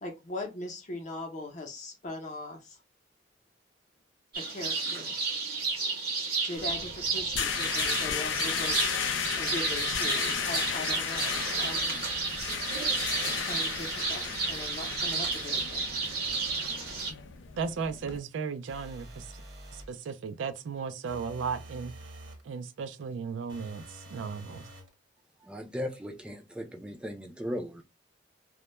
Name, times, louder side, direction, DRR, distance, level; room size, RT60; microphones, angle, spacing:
voice 1, 0.0-2.8 4.4-5.2 6.4-12.0 13.4-16.0, left 2 dB, 40° left, 0.6 m, -40 dB
sound 1, 4.3-17.1, right 4 dB, 55° right, 0.7 m, -32 dB
sound 2, 6.6-18.2, left 7 dB, 85° left, 0.4 m, -34 dB
voice 2, 17.6-19.4 19.7-21.9 22.4-24.7, right 5 dB, 90° right, 0.3 m, -35 dB
sound 3, 18.7-20.0 21.1-22.5 23.5-24.9, right 1 dB, 70° right, 1.0 m, -47 dB
voice 3, 25.4-27.8, equal, 5° right, 0.4 m, -37 dB
2.2 x 2.0 x 2.9 m
head